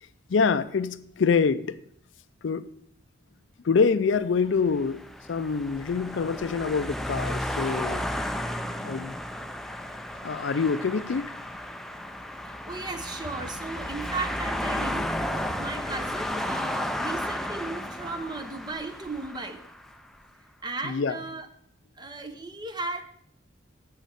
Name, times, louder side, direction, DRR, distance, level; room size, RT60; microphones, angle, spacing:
voice 1, 0.3-1.8 2.4-2.7 3.6-5.0 5.3-8.0 8.8-9.2 10.2-11.3 20.8-21.2, left 5 dB, 70° left, 0.4 m, -25 dB
sound 1, 4.5-19.9, left 1 dB, ahead, 0.5 m, -33 dB
voice 2, 12.6-15.1 15.6-19.6 20.6-21.5 22.0-23.0, right 3 dB, 20° right, 0.8 m, -35 dB
7.3 x 6.3 x 6.6 m
head